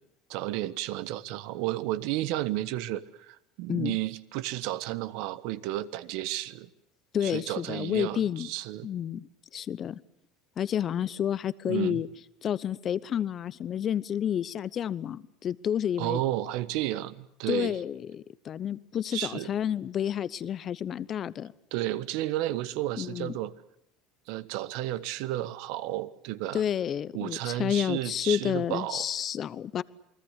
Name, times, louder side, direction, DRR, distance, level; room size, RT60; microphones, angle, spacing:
voice 1, 0.3-6.7 7.2-8.9 11.7-12.0 16.0-17.7 19.1-19.5 21.7-23.5 24.3-26.6 27.1-29.1, right 15 dB, 70° right, 15 dB, 1.2 m, -32 dB
voice 2, 7.1-8.5 8.8-10.0 10.6-12.1 12.4-16.2 17.5-21.5 23.0-23.3 26.5-29.8, left 9 dB, 40° left, 18 dB, 0.9 m, -30 dB
28.5 x 20.5 x 8.2 m, 0.76 s
supercardioid pair, 110°, 0 cm